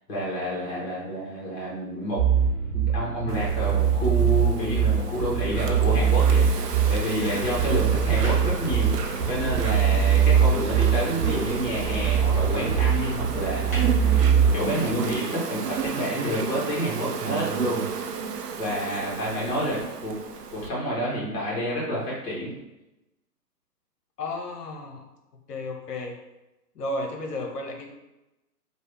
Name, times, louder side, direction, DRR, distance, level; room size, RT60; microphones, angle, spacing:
voice 1, 0.1-2.2 2.7-6.5 6.9-8.9 9.3-17.8 18.6-20.2 20.5-22.5, equal, 30° left, -6 dB, 1.3 m, -29 dB
sound 1, 2.2-14.7, right 7 dB, 35° right, 1.0 m, -22 dB
Insect, 3.3-20.7, right 6 dB, 75° right, 0.5 m, -33 dB
sound 2, 5.8-15.1, equal, 10° left, 0.5 m, -42 dB
voice 2, 7.8-8.2 24.2-25.0 25.5-26.2 26.7-27.9, left 2 dB, 70° left, 2 dB, 0.8 m, -33 dB
3.1 x 2.4 x 3.2 m, 0.98 s
hypercardioid pair, 135°, 49 cm